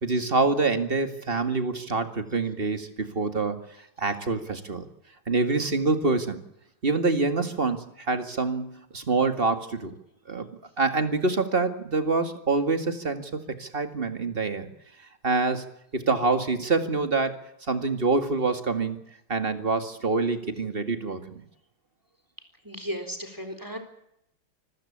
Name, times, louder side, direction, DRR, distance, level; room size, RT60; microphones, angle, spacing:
voice 1, 0.0-3.6 4.0-4.9 5.3-6.4 6.8-9.9 10.3-10.5 10.8-14.7 15.2-15.7 15.9-17.4 17.7-19.0 19.3-21.4, right 3 dB, 25° right, 8 dB, 2.0 m, -26 dB
voice 2, 22.6-23.8, equal, 10° right, 7 dB, 3.6 m, -35 dB
26.5 x 15.0 x 8.7 m, 0.78 s
omnidirectional pair, 2.3 m